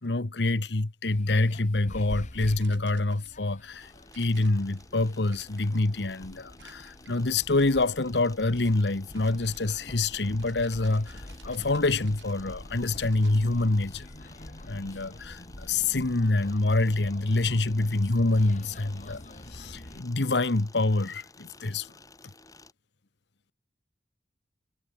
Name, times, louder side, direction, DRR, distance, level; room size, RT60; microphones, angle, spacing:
voice 1, 0.0-14.1 14.7-19.2 19.5-21.9, left 2 dB, 75° left, 1.3 m, -26 dB
sound 1, 1.0-20.0, left 1 dB, 40° left, 2.4 m, -45 dB
sound 2, 2.4-3.5 4.1-4.9 5.3-5.9 6.6-7.2 7.5-7.9 8.5-8.8 9.1-13.5, right 9 dB, 90° right, 8.0 m, -57 dB
sound 3, 3.8-22.7, left 3 dB, 20° left, 4.0 m, -54 dB
head